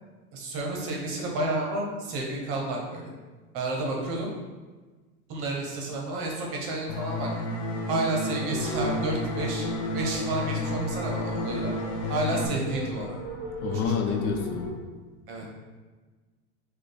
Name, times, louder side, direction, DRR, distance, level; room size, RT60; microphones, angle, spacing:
voice 1, 0.3-3.1 3.5-4.3 5.3-7.3 7.9-11.7 12.1-13.1 13.7-14.2 15.3-15.5, right 2 dB, 30° right, -1 dB, 0.7 m, -31 dB
sound 1, 6.9-12.5, left 2 dB, 45° left, 0.7 m, -31 dB
sound 2, 8.5-14.7, equal, 60° left, 1.1 m, -37 dB
voice 2, 13.6-14.7, left 6 dB, 85° left, 4 dB, 0.8 m, -27 dB
6.5 x 2.3 x 3.3 m, 1.3 s
supercardioid pair, 170°, 43 cm